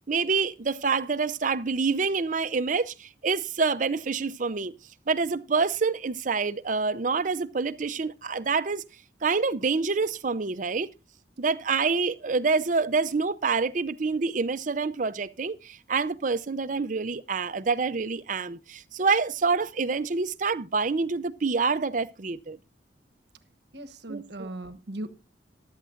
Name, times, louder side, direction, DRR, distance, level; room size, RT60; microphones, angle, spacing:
voice 1, 0.1-4.7 5.1-8.8 9.2-10.9 11.4-22.6 24.1-24.5, right 4 dB, 45° right, 0.6 m, -27 dB
voice 2, 23.7-25.2, right 1 dB, 65° right, 1.2 m, -38 dB
15.0 x 12.0 x 2.5 m
head